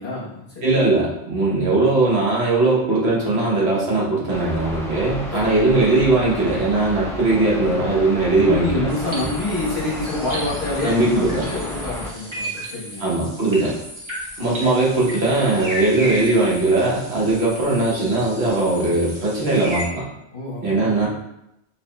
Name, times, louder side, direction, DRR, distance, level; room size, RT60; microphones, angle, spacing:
voice 1, 0.0-0.7 5.3-5.6 8.3-13.0 20.3-21.1, left 2 dB, 50° left, -7 dB, 1.4 m, -27 dB
voice 2, 0.6-9.3 10.8-11.5 13.0-13.7 14.4-20.1 20.6-21.1, right 2 dB, 70° right, -4 dB, 1.3 m, -19 dB
sound 1, 4.3-12.1, left 1 dB, 5° left, 0.4 m, -32 dB
sound 2, 8.9-19.8, equal, 25° right, 1.1 m, -34 dB
4.6 x 3.1 x 2.2 m, 0.83 s
omnidirectional pair, 1.1 m